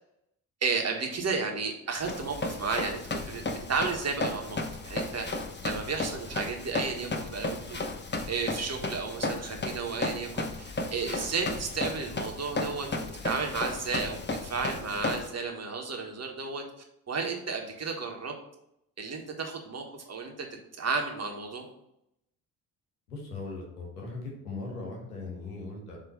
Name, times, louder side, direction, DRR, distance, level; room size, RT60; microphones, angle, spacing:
voice 1, 0.6-3.0 3.2-5.2 5.6-7.8 8.3-16.6 17.1-18.3 19.0-20.5 20.8-21.6, right 4 dB, 35° right, 2 dB, 1.6 m, -33 dB
Run, 2.0-15.3, left 2 dB, 25° left, 1.0 m, -34 dB
voice 2, 23.1-26.0, left 3 dB, 85° left, -1 dB, 1.3 m, -39 dB
7.4 x 3.2 x 5.4 m, 0.80 s
hypercardioid pair, 45°, 45 cm